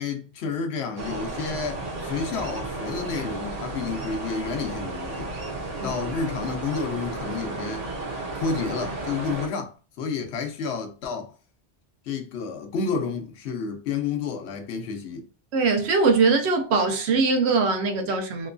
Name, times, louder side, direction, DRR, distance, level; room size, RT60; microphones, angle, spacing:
voice 1, 0.0-5.3 5.8-7.9 8.4-11.3 12.1-15.3, left 5 dB, 75° left, 0.9 m, -30 dB
sound 1, 1.0-9.5, right 2 dB, 40° right, 0.7 m, -33 dB
voice 2, 15.5-18.5, right 4 dB, 80° right, 0.9 m, -21 dB
2.9 x 2.2 x 2.4 m
omnidirectional pair, 1.1 m